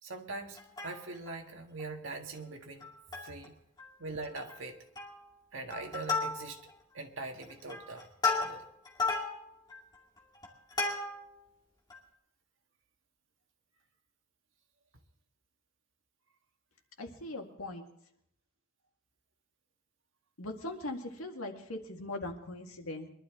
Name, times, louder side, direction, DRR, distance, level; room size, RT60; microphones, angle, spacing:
voice 1, 0.0-2.9 3.2-3.5 4.0-4.8 5.5-6.6 6.9-8.1 8.3-8.6, right 3 dB, 65° right, 3 dB, 1.7 m, -42 dB
Plucked string instrument, 0.6-1.4 1.8-1.9 2.1-2.4 2.8-3.5 3.8-3.9 4.2-4.6 5.0-5.3 5.7-6.8 7.3-11.4 11.9-12.0, left 3 dB, 20° left, 2.3 m, -34 dB
voice 2, 17.0-17.9 20.4-23.1, left 2 dB, 85° left, 3 dB, 2.0 m, -40 dB
22.5 x 12.0 x 3.7 m, 0.74 s
head